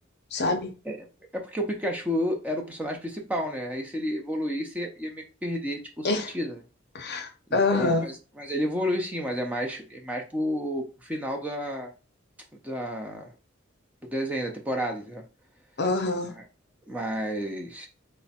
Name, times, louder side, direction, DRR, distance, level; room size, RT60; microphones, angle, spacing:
voice 1, 0.3-0.7 6.0-6.3 6.9-8.0 15.8-16.3, left 3 dB, 55° left, 0.6 m, -25 dB
voice 2, 1.3-6.6 7.7-11.9 12.6-13.3 14.0-15.2 16.3-16.4 16.9-17.9, equal, 10° right, 0.5 m, -31 dB
3.3 x 2.1 x 4.1 m
head